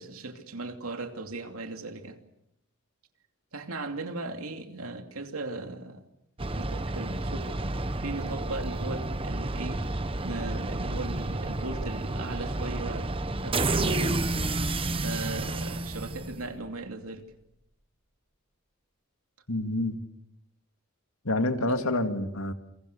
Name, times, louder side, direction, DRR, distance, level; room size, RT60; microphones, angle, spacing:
voice 1, 0.0-2.2 3.5-6.0 6.6-7.5 8.0-9.8 10.2-13.1 13.4-14.3 15.0-17.3 21.6-21.8, right 2 dB, 90° right, 2.8 m, -37 dB
sound 1, 6.4-16.7, right 2 dB, 25° right, 1.1 m, -30 dB
voice 2, 19.5-20.0 21.2-22.5, left 2 dB, 85° left, 2.2 m, -28 dB
28.5 x 23.0 x 6.8 m
head